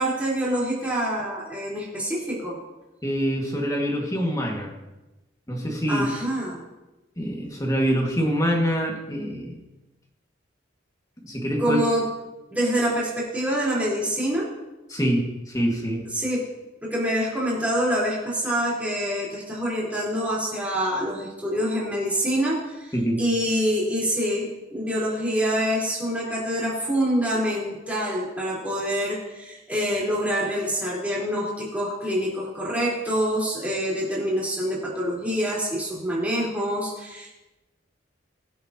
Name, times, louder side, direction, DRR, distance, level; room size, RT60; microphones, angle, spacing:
voice 1, 0.0-2.5 5.9-6.6 11.6-12.0 12.5-14.5 16.1-16.4 16.8-37.3, equal, 5° right, -6 dB, 4.3 m, -26 dB
voice 2, 3.0-4.7 5.5-6.1 7.2-9.6 11.2-11.8 14.9-16.1 22.9-23.2, equal, 15° left, 0 dB, 2.0 m, -25 dB
23.0 x 8.7 x 3.0 m, 1.0 s
head